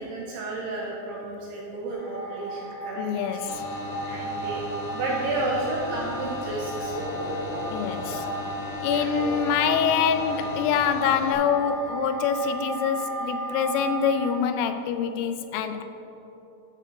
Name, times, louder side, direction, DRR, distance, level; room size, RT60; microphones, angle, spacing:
voice 1, 0.0-3.5 4.1-4.6 4.9-6.9 8.9-9.1, right 2 dB, 75° right, -3 dB, 2.5 m, -32 dB
sound 1, 1.9-14.3, right 2 dB, 45° left, 2.9 m, -35 dB
voice 2, 3.0-3.6 7.7-8.3 8.8-15.8, left 7 dB, 90° left, 9 dB, 3.2 m, -25 dB
sound 2, 3.5-11.3, left 2 dB, 70° left, 2.6 m, -37 dB
Subway metro underground, 5.2-12.0, right 1 dB, 55° right, 0.7 m, -38 dB
11.0 x 5.9 x 6.9 m, 2.9 s
omnidirectional pair, 5.7 m